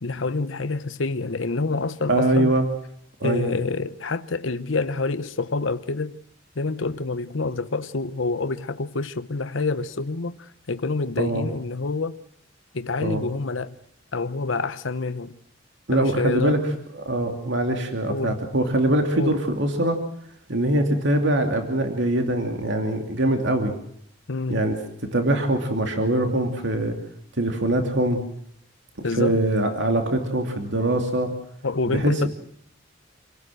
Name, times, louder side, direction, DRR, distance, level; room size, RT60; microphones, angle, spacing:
voice 1, 0.0-2.5 3.2-6.2 6.6-12.2 12.7-13.8 14.1-15.4 15.9-16.6 18.1-18.4 19.1-19.4 24.3-24.7 29.0-29.4 31.6-32.3, left 3 dB, 80° left, 0.9 m, -27 dB
voice 2, 2.1-2.6 3.2-3.5 11.2-11.5 13.0-13.2 15.9-16.6 16.9-20.0 20.5-23.7 24.5-24.8 25.1-26.9 27.4-28.2 29.2-31.3 31.9-32.3, right 1 dB, 65° right, 2.8 m, -23 dB
27.5 x 18.0 x 7.7 m
head